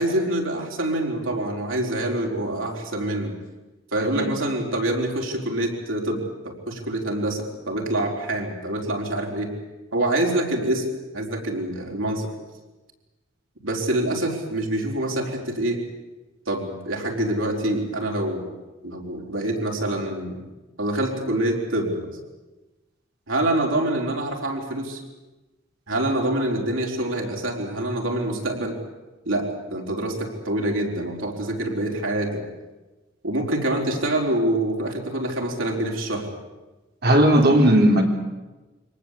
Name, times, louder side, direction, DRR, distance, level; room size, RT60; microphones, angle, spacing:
voice 1, 0.0-3.3 3.9-9.5 9.9-10.8 11.1-12.3 13.6-15.8 16.5-18.5 18.8-20.4 20.8-22.1 23.3-25.0 25.9-28.8 29.2-32.4 33.2-36.3, right 1 dB, 90° right, 0 dB, 4.7 m, -26 dB
voice 2, 37.0-38.0, right 1 dB, 55° right, 2 dB, 3.6 m, -16 dB
24.0 x 19.0 x 8.5 m, 1.1 s
head